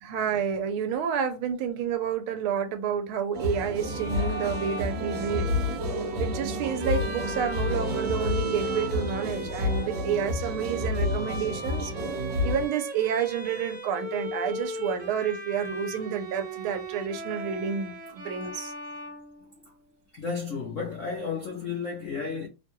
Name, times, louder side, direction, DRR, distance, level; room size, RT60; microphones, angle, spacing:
voice 1, 0.0-5.5 6.2-11.9 12.4-18.7, right 7 dB, 80° right, 1.4 m, -29 dB
sound 1, 3.3-12.7, left 2 dB, 60° right, 1.3 m, -30 dB
Bowed string instrument, 3.8-19.8, right 2 dB, 35° right, 1.1 m, -37 dB
voice 2, 20.1-22.5, left 5 dB, 70° left, 0.7 m, -32 dB
3.5 x 2.2 x 2.9 m
omnidirectional pair, 2.3 m